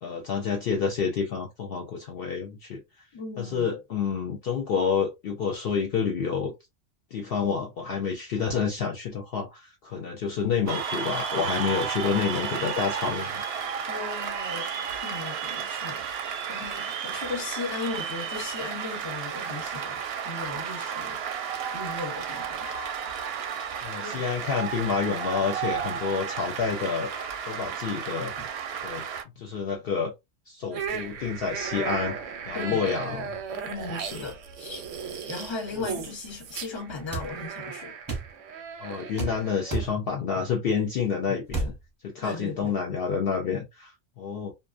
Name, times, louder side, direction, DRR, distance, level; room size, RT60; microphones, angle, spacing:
voice 1, 0.0-2.8 3.4-6.5 7.1-13.4 23.8-27.1 27.4-28.3 28.8-29.0 29.4-30.1 30.5-32.2 32.5-33.4 34.0-34.2 35.7-35.9 38.8-41.7 42.0-44.5, left 6 dB, 60° left, 0.7 m, -29 dB
voice 2, 3.1-3.7 13.9-14.7 15.0-21.2 21.7-22.7 24.0-24.3 28.4-28.5 32.5-32.9 33.6-38.0 42.2-42.8, left 4 dB, 30° left, 0.7 m, -37 dB
Cheering / Applause, 10.7-29.2, right 7 dB, 65° right, 0.7 m, -33 dB
sound 1, 30.7-39.9, right 6 dB, 90° right, 0.9 m, -36 dB
sound 2, 37.1-37.3 38.1-38.3 39.2-39.4 39.7-39.9 41.5-41.8, right 3 dB, 20° right, 0.6 m, -30 dB
2.5 x 2.1 x 2.4 m
omnidirectional pair, 1.3 m